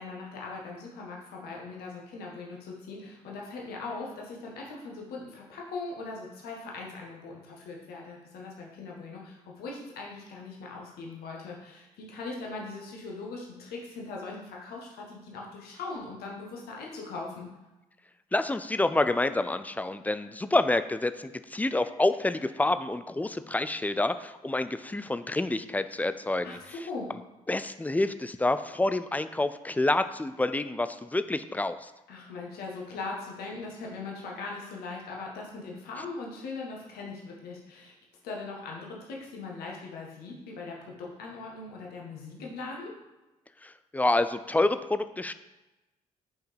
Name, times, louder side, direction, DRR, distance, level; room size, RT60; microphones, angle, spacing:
voice 1, 0.0-17.5 26.4-27.1 32.1-37.9 38.2-42.9, left 3 dB, 60° left, -2 dB, 1.6 m, -40 dB
voice 2, 18.3-26.6 27.5-31.9 43.6-45.3, left 2 dB, 10° left, 11 dB, 0.5 m, -28 dB
9.8 x 5.6 x 3.4 m, 1.0 s
figure-of-eight pair, 40°, 18 cm